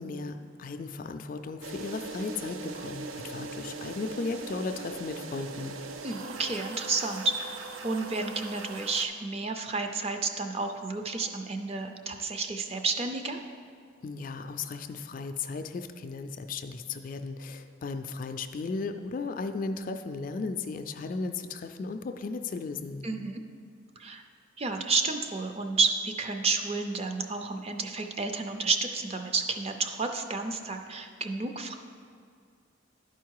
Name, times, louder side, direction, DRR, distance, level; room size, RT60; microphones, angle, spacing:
voice 1, 0.0-5.8 14.0-23.1, left 4 dB, 45° left, 7 dB, 0.3 m, -35 dB
sound 1, 1.6-9.0, right 3 dB, 90° right, 0.5 m, -40 dB
voice 2, 6.0-13.4 23.0-23.4 24.0-24.2 24.6-31.8, right 3 dB, 30° right, 6 dB, 0.5 m, -31 dB
11.0 x 4.6 x 4.6 m, 2.2 s
head